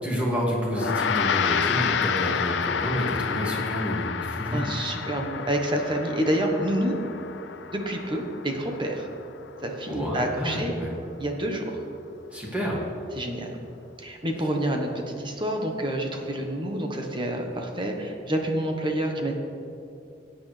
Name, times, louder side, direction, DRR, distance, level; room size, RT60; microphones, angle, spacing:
voice 1, 0.0-4.6 9.9-10.9 12.3-12.8, equal, 10° right, -4 dB, 2.2 m, -29 dB
Gong, 0.7-10.3, left 7 dB, 80° left, 0.4 m, -30 dB
voice 2, 4.5-7.0 7.7-9.1 9.6-10.7 11.2-11.8 13.2-13.5 14.0-19.3, right 1 dB, 30° right, 2 dB, 1.2 m, -28 dB
17.0 x 8.9 x 3.3 m, 2.6 s
head